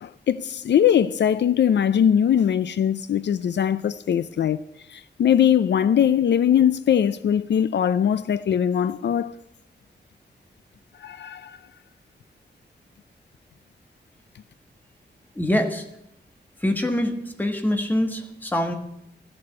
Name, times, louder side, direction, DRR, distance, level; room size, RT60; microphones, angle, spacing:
voice 1, 0.0-4.6 4.9-9.3 11.0-11.6, left 9 dB, 75° left, 0.5 m, -21 dB
voice 2, 15.3-15.8 16.6-18.7, left 1 dB, 10° left, 1.4 m, -24 dB
14.0 x 6.9 x 9.6 m
wide cardioid pair, 170°, 18 cm